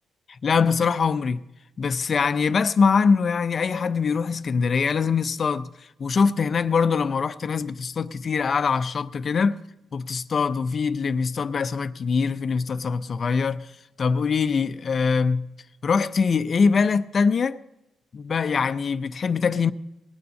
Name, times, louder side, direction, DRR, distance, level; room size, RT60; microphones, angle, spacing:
voice 1, 0.4-1.4 1.8-5.7 6.0-9.6 9.9-13.7 14.0-15.4 15.8-17.6 18.1-19.7, left 5 dB, 45° left, 0.5 m, -23 dB
20.0 x 6.8 x 5.4 m
cardioid pair, 90°, 0 cm